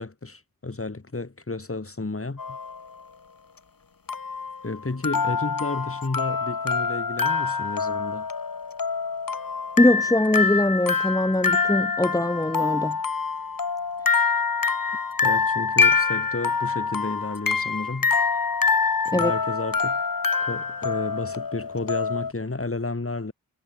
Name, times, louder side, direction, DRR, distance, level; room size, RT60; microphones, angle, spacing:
voice 1, 0.0-2.6 4.6-8.3 15.2-18.1 19.0-20.0 20.4-23.3, left 3 dB, 40° left, 4.7 m, -32 dB
sound 1, 2.4-2.8 4.1-22.3, left 5 dB, 70° left, 2.9 m, -25 dB
voice 2, 9.8-13.0 19.1-19.3, left 1 dB, 10° left, 1.1 m, -22 dB
wide cardioid pair, 75°, 36 cm